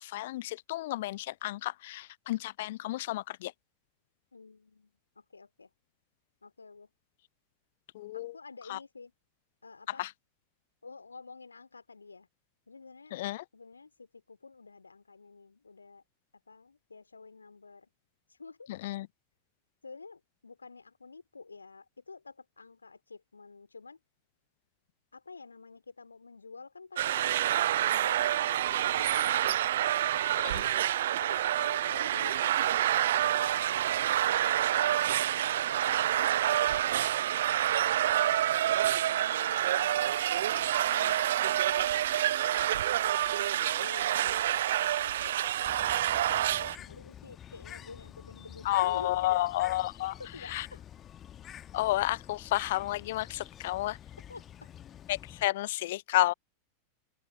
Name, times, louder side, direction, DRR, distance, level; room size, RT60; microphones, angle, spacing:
voice 1, 0.0-3.5 7.9-8.4 8.7-8.8 10.0-10.1 13.1-13.4 18.7-19.1 30.4-30.8 48.6-50.1 50.4-50.7 51.7-54.0 55.1-56.3, left 16 dB, 55° left, 0.4 m, -31 dB
voice 2, 4.3-5.7 6.4-6.9 8.1-9.1 9.6-10.1 10.8-12.3 12.7-13.1 13.5-16.0 16.5-17.9 18.3-18.7 19.8-24.0 25.1-27.4 27.9-30.3 31.1-37.0 38.1-38.4 39.0-40.0 40.5-41.2 41.7-42.1 42.5-45.8 46.1-49.4 50.0-50.8 54.3-54.7, left 4 dB, 80° left, 2.8 m, -50 dB
sound 1, 27.0-46.7, right 12 dB, 60° right, 0.8 m, -28 dB
Bird, 45.7-55.5, left 10 dB, 30° left, 1.2 m, -48 dB
open air
figure-of-eight pair, 90°, 0 cm